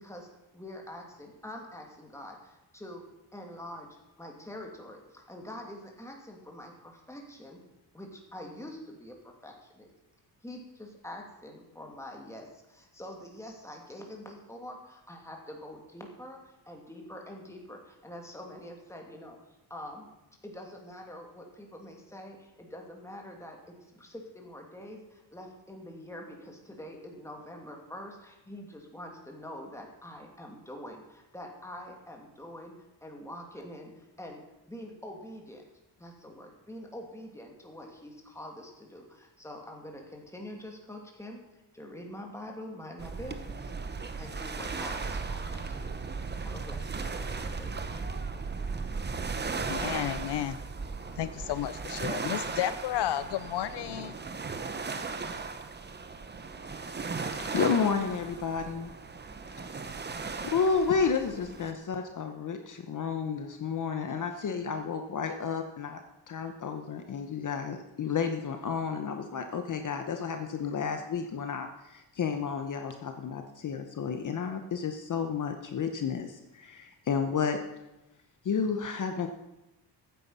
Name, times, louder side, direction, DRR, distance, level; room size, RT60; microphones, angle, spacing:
voice 1, 0.0-3.0 3.3-7.6 7.9-9.9 10.4-20.1 20.4-32.7 33.0-34.4 34.7-35.6 36.0-41.4 41.7-43.7 44.2-46.0 46.4-48.1, left 1 dB, 5° left, 1 dB, 2.5 m, -45 dB
sound 1, 43.0-61.7, right 4 dB, 25° right, 0.9 m, -36 dB
voice 2, 49.6-50.6 51.2-54.1, left 12 dB, 75° left, 14 dB, 0.6 m, -32 dB
voice 3, 57.3-58.9 59.7-60.0 60.4-66.0 66.3-77.6 78.4-79.3, left 6 dB, 45° left, 6 dB, 0.9 m, -31 dB
14.5 x 9.3 x 5.6 m, 0.94 s
wide cardioid pair, 155°, 42 cm